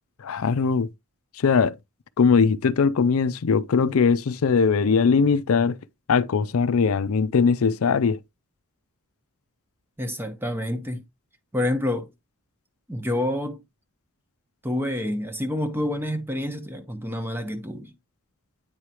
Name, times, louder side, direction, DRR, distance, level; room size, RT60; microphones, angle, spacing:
voice 1, 0.2-0.9 1.4-1.7 2.2-5.8 6.1-8.2, left 5 dB, 70° left, 0.5 m, -20 dB
voice 2, 10.0-11.0 11.5-12.1 12.9-13.6 14.6-17.9, left 1 dB, 10° right, 0.9 m, -28 dB
9.1 x 4.8 x 3.0 m
head